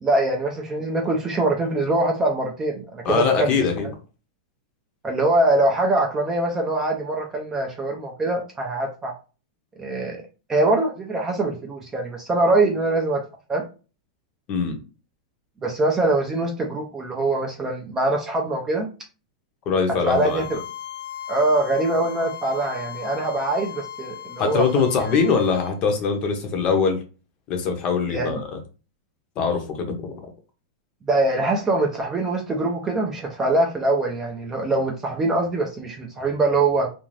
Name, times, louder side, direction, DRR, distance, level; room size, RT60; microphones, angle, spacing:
voice 1, 0.0-3.6 5.0-9.2 9.8-10.2 10.5-13.2 13.5-13.6 15.6-18.9 20.1-20.6 21.3-24.6 28.1-28.4 31.1-36.9, right 2 dB, 10° right, 0 dB, 0.4 m, -23 dB
voice 2, 3.0-3.9 14.5-14.8 19.7-20.4 24.4-27.0 27.5-28.4 29.4-30.1, left 5 dB, 30° left, 5 dB, 0.6 m, -22 dB
Bowed string instrument, 20.0-25.7, left 10 dB, 65° left, 0.8 m, -37 dB
2.5 x 2.3 x 3.1 m, 0.33 s
supercardioid pair, 160°, 4 cm